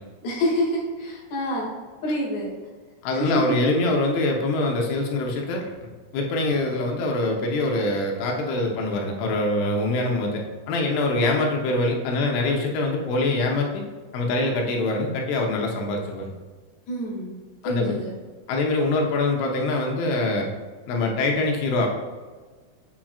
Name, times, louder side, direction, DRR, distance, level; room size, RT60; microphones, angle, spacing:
voice 1, 0.2-1.7 2.0-2.5 3.1-3.4 16.9-17.4 17.6-18.1, equal, 45° left, -5 dB, 2.9 m, -27 dB
voice 2, 3.0-5.7 6.1-13.8 14.1-16.3 17.6-17.9 18.5-20.5 20.9-21.9, left 2 dB, 85° left, 0 dB, 3.4 m, -24 dB
7.4 x 7.4 x 2.4 m, 1.4 s
omnidirectional pair, 5.4 m